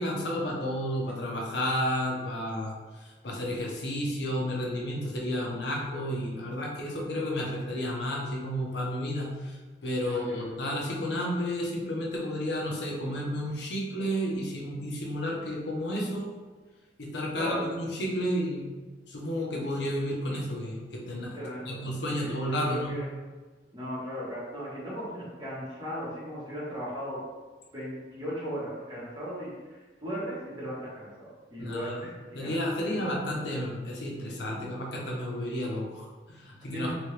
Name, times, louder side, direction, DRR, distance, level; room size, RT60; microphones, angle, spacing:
voice 1, 0.0-2.7 3.0-16.3 17.0-18.7 19.1-21.4 21.7-22.9 31.6-32.0 32.3-36.9, equal, 70° left, -2 dB, 0.7 m, -32 dB
voice 2, 10.0-10.4 17.4-17.6 21.3-21.8 22.1-23.1 23.7-27.2 27.7-29.5 30.0-32.5 32.8-33.1 36.7-36.9, equal, 25° right, -9 dB, 1.3 m, -37 dB
3.0 x 2.8 x 3.2 m, 1.3 s
head